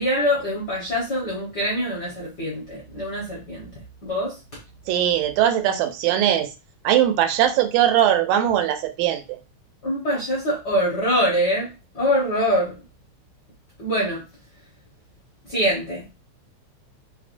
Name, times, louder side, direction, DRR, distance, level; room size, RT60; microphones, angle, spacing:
voice 1, 0.0-3.7 4.0-4.4 9.8-11.7 11.9-12.7 13.8-14.2 15.5-16.1, equal, 55° left, -6 dB, 1.2 m, -24 dB
voice 2, 4.9-6.5 6.8-9.4, right 11 dB, 85° right, 7 dB, 2.0 m, -20 dB
5.2 x 2.1 x 2.5 m, 0.29 s
omnidirectional pair, 3.3 m